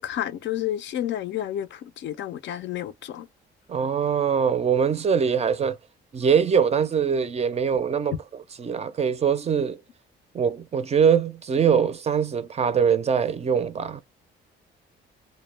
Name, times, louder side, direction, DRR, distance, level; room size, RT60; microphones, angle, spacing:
voice 1, 0.0-3.3, left 11 dB, 65° left, 0.4 m, -30 dB
voice 2, 3.7-5.8 6.1-9.8 10.3-14.0, right 7 dB, 35° right, 0.4 m, -23 dB
2.1 x 2.1 x 3.2 m
cardioid pair, 90°, 20 cm